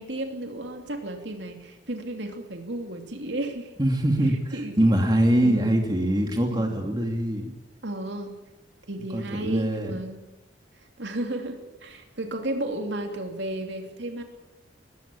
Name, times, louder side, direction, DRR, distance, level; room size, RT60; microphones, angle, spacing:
voice 1, 0.0-3.7 4.5-5.0 5.4-5.8 6.5-6.7 7.8-8.4 8.9-10.2 11.0-14.2, right 1 dB, 70° right, 4 dB, 2.8 m, -33 dB
voice 2, 3.8-7.5 9.1-9.9, right 1 dB, 20° right, 2 dB, 2.7 m, -23 dB
21.0 x 15.5 x 8.8 m, 1.0 s
head